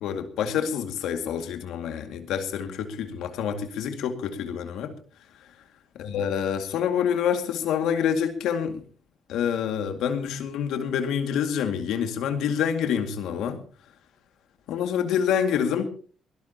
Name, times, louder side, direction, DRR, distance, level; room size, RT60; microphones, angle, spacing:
voice 1, 0.0-4.9 6.0-8.8 9.3-13.6 14.7-15.8, left 8 dB, 85° left, 2.1 m, -27 dB
22.5 x 18.0 x 2.9 m
cardioid pair, 90°, 0 cm